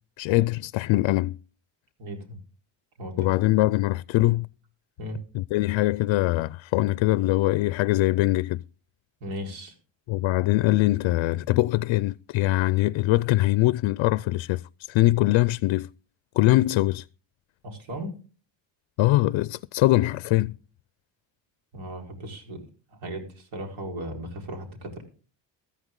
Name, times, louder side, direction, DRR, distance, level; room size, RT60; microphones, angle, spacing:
voice 1, 0.2-1.4 3.2-4.5 5.3-8.6 10.1-14.6 14.9-15.9 16.4-17.0 19.0-20.6, left 18 dB, 80° left, 0.5 m, -22 dB
voice 2, 2.0-2.4 3.0-3.3 5.0-5.2 9.2-9.7 17.6-18.1 21.7-22.6 22.9-25.0, equal, 80° right, 4.7 m, -36 dB
14.0 x 14.0 x 3.8 m
cardioid pair, 125°, 46 cm